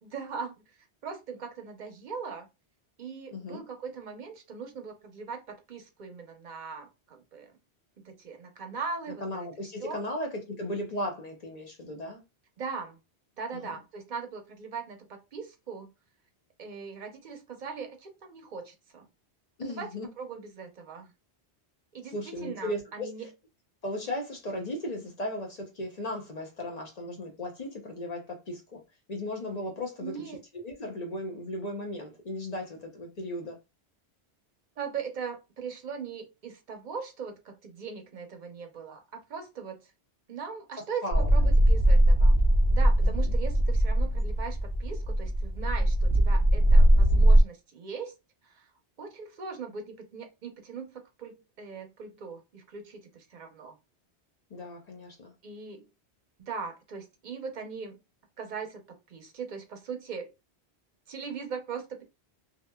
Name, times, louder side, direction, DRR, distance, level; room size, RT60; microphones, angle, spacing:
voice 1, 0.0-0.5 1.0-2.5 3.0-7.5 8.0-9.5 9.8-10.0 12.6-13.0 13.4-15.9 16.6-19.1 19.6-19.9 20.2-21.1 21.9-23.3 30.0-30.4 34.8-39.9 40.3-42.4 42.7-48.1 48.4-48.7 49.0-53.8 55.4-55.9 56.4-58.0 58.4-58.8 59.1-60.3 61.1-62.0, right 5 dB, 50° right, 0.7 m, -40 dB
voice 2, 3.3-3.6 9.2-12.2 13.5-13.7 19.6-20.1 22.1-23.1 23.8-28.8 29.1-30.1 30.6-33.6 41.0-41.3 43.0-43.3 54.5-55.3, left 1 dB, 45° left, 0.6 m, -36 dB
sound 1, 41.1-47.4, right 1 dB, 85° left, 1.0 m, -21 dB
2.8 x 2.4 x 2.2 m
omnidirectional pair, 1.1 m